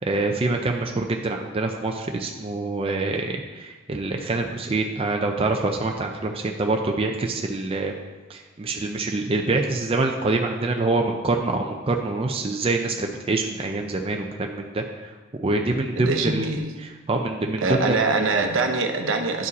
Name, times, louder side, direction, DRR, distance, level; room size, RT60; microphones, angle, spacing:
voice 1, 0.0-8.0 8.3-15.1 15.4-16.4 16.8-18.0, right 2 dB, 30° right, 2 dB, 0.5 m, -25 dB
voice 2, 16.0-16.7 17.6-19.5, right 3 dB, 70° right, 5 dB, 0.8 m, -23 dB
10.0 x 5.0 x 4.1 m, 1.3 s
head